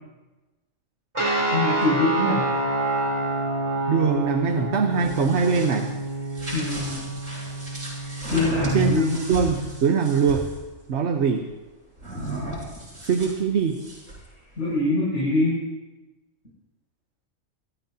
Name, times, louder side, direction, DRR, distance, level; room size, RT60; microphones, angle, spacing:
sound 1, 1.1-10.1, right 2 dB, 20° right, 2.9 m, -28 dB
voice 1, 1.5-2.5 6.5-7.0 8.2-9.2 14.6-15.6, left 2 dB, 80° left, -9 dB, 6.8 m, -23 dB
voice 2, 3.9-5.9 8.7-9.0 9.3-10.5 10.9-11.5 13.0-13.8, right 5 dB, 60° right, 5 dB, 1.2 m, -22 dB
sound 2, 4.8-10.6 12.0-14.3, right 1 dB, 85° right, 7.0 m, -35 dB
27.5 x 14.0 x 2.8 m, 1.1 s
omnidirectional pair, 1.3 m